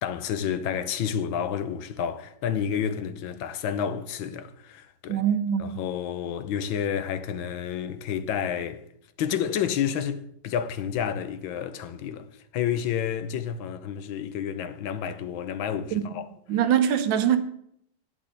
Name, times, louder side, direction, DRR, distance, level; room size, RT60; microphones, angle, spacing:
voice 1, 0.0-5.2 5.6-8.8 9.2-12.3 12.5-16.3, left 8 dB, 80° left, 1.6 m, -30 dB
voice 2, 5.1-5.8 15.9-16.0 16.5-17.4, right 9 dB, 75° right, 1.7 m, -23 dB
10.0 x 5.4 x 8.5 m
omnidirectional pair, 2.2 m